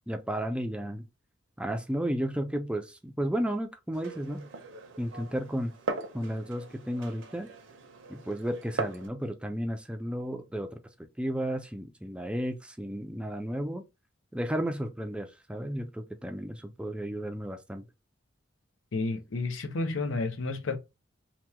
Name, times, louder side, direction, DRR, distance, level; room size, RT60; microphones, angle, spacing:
voice 1, 0.1-1.1 1.6-4.5 5.0-5.7 6.1-7.5 8.1-10.8 11.2-13.8 14.3-17.9, equal, 5° right, 0.4 m, -33 dB
Glass, 3.9-9.1, right 3 dB, 70° right, 0.7 m, -39 dB
voice 2, 18.9-20.8, left 3 dB, 80° left, 0.6 m, -31 dB
2.9 x 2.2 x 3.3 m
head